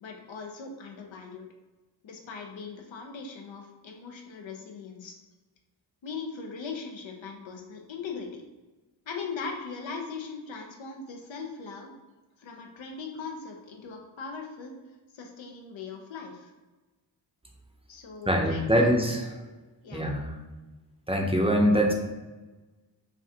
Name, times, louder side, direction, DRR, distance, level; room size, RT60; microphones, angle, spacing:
voice 1, 0.0-1.5 2.0-5.2 6.0-8.3 9.1-11.9 12.4-14.8 15.1-16.5 17.9-18.9 19.8-20.1, left 5 dB, 85° left, 2 dB, 0.8 m, -39 dB
voice 2, 18.3-19.2 19.9-20.3 21.1-21.9, equal, 15° right, 0 dB, 0.6 m, -23 dB
5.7 x 2.5 x 2.8 m, 1.2 s
wide cardioid pair, 95°, 44 cm